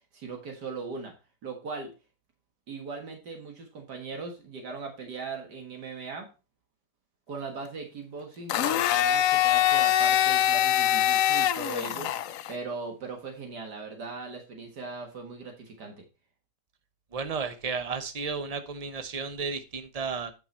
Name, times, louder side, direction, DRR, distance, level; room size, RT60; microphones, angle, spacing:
voice 1, 0.1-1.1 1.4-1.9 2.7-6.3 7.3-16.1, right 4 dB, 75° right, 3 dB, 2.2 m, -39 dB
Domestic sounds home sounds, 8.5-12.5, left 12 dB, 70° left, 0.8 m, -23 dB
voice 2, 17.1-20.3, right 5 dB, 30° right, 8 dB, 0.7 m, -33 dB
8.7 x 6.0 x 4.3 m, 0.30 s
omnidirectional pair, 1.8 m